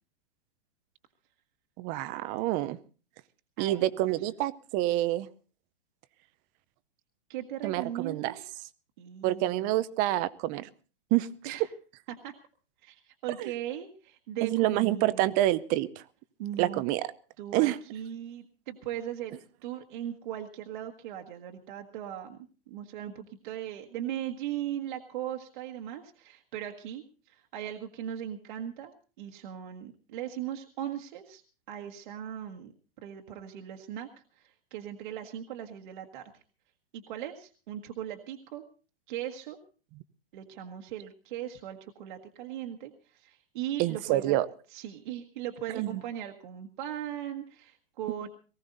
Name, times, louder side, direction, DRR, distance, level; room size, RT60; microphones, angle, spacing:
voice 1, 1.8-2.8 3.6-5.3 7.6-8.3 9.2-10.7 11.1-11.5 13.4-13.5 14.4-16.0 16.6-17.1 17.5-17.8 43.8-44.5 45.7-46.0, right 15 dB, 25° right, 16 dB, 0.7 m, -27 dB
voice 2, 3.6-4.0 7.3-8.4 9.0-9.7 11.4-11.7 12.1-12.3 12.8-15.4 16.4-16.8 17.4-22.4 22.7-31.4 31.7-32.7 33.0-34.1 34.3-36.3 36.9-38.6 39.1-39.6 40.3-44.4 44.7-48.3, right 11 dB, 55° right, 3 dB, 1.6 m, -38 dB
19.5 x 15.5 x 4.0 m, 0.37 s
hypercardioid pair, 150°, 30 cm